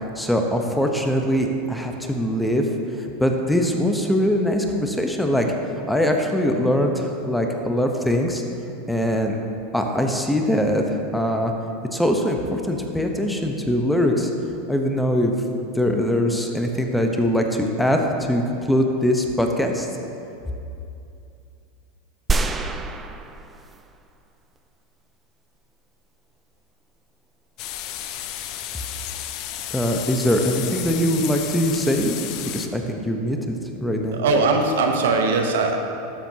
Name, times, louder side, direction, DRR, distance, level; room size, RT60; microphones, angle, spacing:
voice 1, 0.2-2.7 3.0-5.5 5.9-8.4 8.9-9.4 9.7-10.8 11.1-11.5 11.9-14.3 14.7-15.4 15.7-18.4 18.7-19.9 29.7-32.2 32.5-34.2, equal, 5° left, 3 dB, 0.9 m, -22 dB
sound 1, 22.3-24.0 24.6-24.7, right 3 dB, 20° right, 0.5 m, -26 dB
sound 2, 27.6-32.7, left 11 dB, 55° left, 0.5 m, -32 dB
voice 2, 34.1-35.8, right 3 dB, 75° right, 4 dB, 0.9 m, -20 dB
12.5 x 7.3 x 2.8 m, 2.7 s
hypercardioid pair, 100°, 0 cm